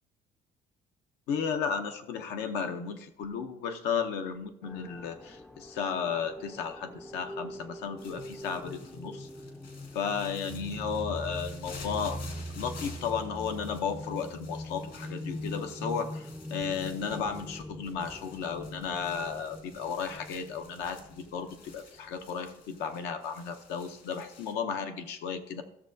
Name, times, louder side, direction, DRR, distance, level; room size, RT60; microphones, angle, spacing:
voice 1, 1.3-9.3 9.9-12.2 12.5-25.6, left 6 dB, 85° left, 6 dB, 0.8 m, -34 dB
sound 1, 4.6-21.8, left 1 dB, 5° left, 0.4 m, -42 dB
sound 2, 8.0-24.5, left 4 dB, 65° left, 2.0 m, -52 dB
13.5 x 6.5 x 2.7 m, 0.80 s
cardioid pair, 110°, 17 cm